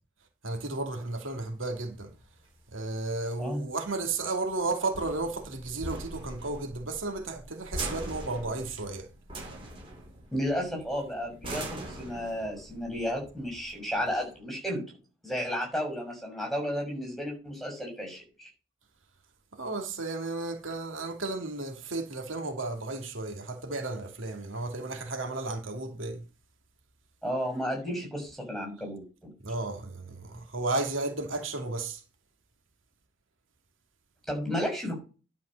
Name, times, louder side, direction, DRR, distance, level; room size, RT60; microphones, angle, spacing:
voice 1, 0.4-2.1 2.7-9.1 19.5-26.2 29.4-32.0, right 3 dB, 85° right, 2.6 m, -33 dB
sound 1, 1.3-14.3, right 1 dB, 25° right, 4.6 m, -42 dB
voice 2, 10.3-15.0 15.2-18.5 27.2-29.3 34.3-35.0, equal, ahead, 6.6 m, -33 dB
11.5 x 5.6 x 6.6 m
head